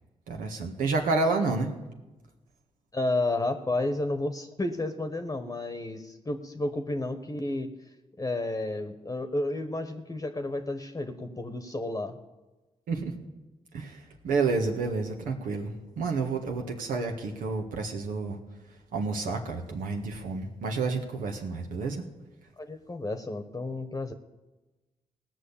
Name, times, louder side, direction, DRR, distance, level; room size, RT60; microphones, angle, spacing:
voice 1, 0.3-1.7 12.9-13.1 13.7-18.4 18.7-22.0, right 4 dB, 90° right, 3 dB, 1.7 m, -30 dB
voice 2, 2.9-7.7 8.2-12.2 22.6-24.1, left 2 dB, 25° left, 7 dB, 1.1 m, -31 dB
17.5 x 6.3 x 8.5 m, 1.1 s
cardioid pair, 60°, 14 cm